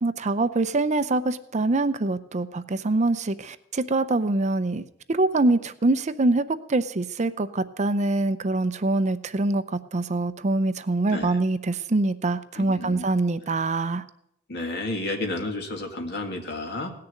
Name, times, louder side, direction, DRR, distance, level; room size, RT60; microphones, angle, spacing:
voice 1, 0.0-14.0, right 2 dB, 35° right, 12 dB, 0.6 m, -24 dB
voice 2, 12.6-13.1 13.5-13.6 14.5-16.9, left 2 dB, 55° left, 3 dB, 2.3 m, -31 dB
17.0 x 6.8 x 9.3 m, 0.77 s
head